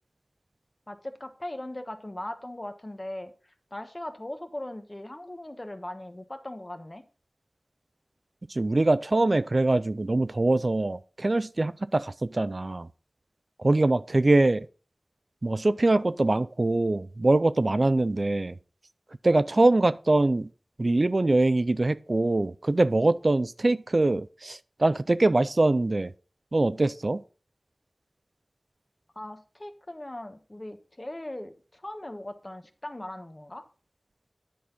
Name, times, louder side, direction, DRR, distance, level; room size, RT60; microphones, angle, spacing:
voice 1, 0.9-3.3 3.7-7.0 29.1-33.6, left 1 dB, 35° left, 1.2 m, -39 dB
voice 2, 8.5-12.9 13.6-14.7 15.4-18.6 19.2-20.5 20.8-26.1 26.5-27.2, right 2 dB, 55° right, 0.4 m, -23 dB
10.5 x 4.2 x 5.3 m
wide cardioid pair, 45°, 0 cm